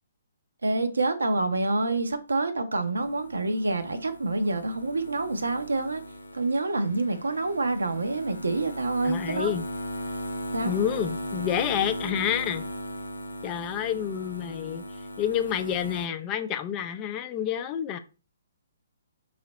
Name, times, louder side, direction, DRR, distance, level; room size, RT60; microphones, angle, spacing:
voice 1, 0.6-6.0 6.3-9.5 10.5-10.8, right 2 dB, 80° right, 0.6 m, -27 dB
sound 1, 3.0-16.1, equal, 85° left, 0.6 m, -37 dB
voice 2, 9.0-9.7 10.6-12.7 13.4-14.8 15.2-18.0, left 9 dB, 25° left, 0.4 m, -29 dB
3.2 x 2.8 x 4.0 m
figure-of-eight pair, 130°, 0 cm